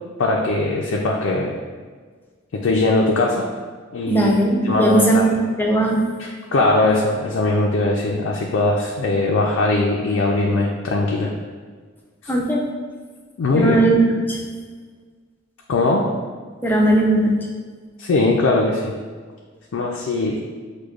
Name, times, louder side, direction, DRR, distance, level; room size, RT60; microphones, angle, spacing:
voice 1, 0.2-1.6 2.5-3.5 3.9-4.3 4.6-5.2 6.2-11.3 13.4-13.8 15.7-16.1 18.0-18.9 19.7-20.4, left 2 dB, 85° left, -1 dB, 0.4 m, -20 dB
voice 2, 4.1-5.3 5.6-6.0 12.3-12.6 13.5-14.4 16.6-17.5, right 1 dB, 10° left, -2 dB, 0.5 m, -18 dB
6.4 x 2.1 x 2.4 m, 1.5 s
head